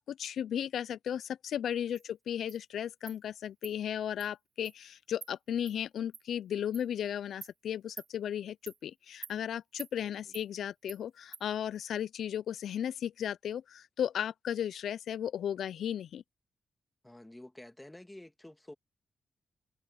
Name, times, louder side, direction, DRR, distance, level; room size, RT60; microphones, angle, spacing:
voice 1, 0.0-16.2, left 9 dB, 85° left, 0.3 m, -35 dB
Insect, 2.0-2.1 2.5-2.6 3.1-3.2 3.6-3.7 4.2-4.3 4.6-4.8 5.2-5.3 5.7-5.8 6.1-6.2 6.7-6.9 7.4-7.5 8.0-8.1 8.7-8.8 9.2-9.4 9.8-9.9 10.3-10.5 10.9-11.0 11.3-11.4, right 6 dB, 60° right, 0.5 m, -46 dB
voice 2, 10.0-10.4 17.0-18.7, left 1 dB, 10° left, 2.0 m, -50 dB
cardioid pair, 70°, 0 cm